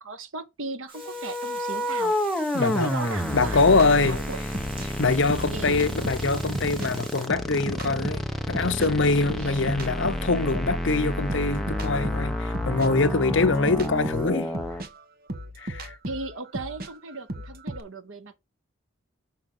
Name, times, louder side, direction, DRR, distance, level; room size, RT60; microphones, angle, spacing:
voice 1, 0.0-2.1 2.6-4.4 5.5-5.8 9.4-9.6 16.0-18.3, right 3 dB, 80° right, 1.3 m, -37 dB
sound 1, 0.9-14.8, equal, ahead, 1.1 m, -30 dB
Water, 0.9-7.3, right 3 dB, 25° right, 2.5 m, -45 dB
voice 2, 2.5-2.9 3.3-4.2 5.0-14.5 15.6-15.9, left 3 dB, 65° left, 0.8 m, -24 dB
sound 2, 3.7-6.9 7.2-10.8 11.3-17.8, right 1 dB, 45° right, 1.3 m, -37 dB
6.5 x 5.8 x 5.6 m
head